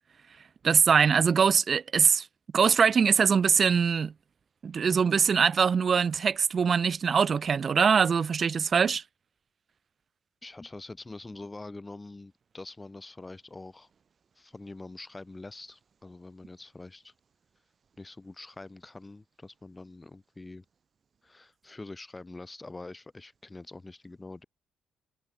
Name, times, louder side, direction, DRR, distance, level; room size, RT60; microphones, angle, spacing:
voice 1, 0.6-2.3 2.5-4.1 4.6-9.0, right 6 dB, 45° right, 1.8 m, -23 dB
voice 2, 10.4-13.9 14.4-17.1 18.0-20.6 21.2-24.5, left 2 dB, 20° left, 5.7 m, -45 dB
cardioid pair, 90°, 0 cm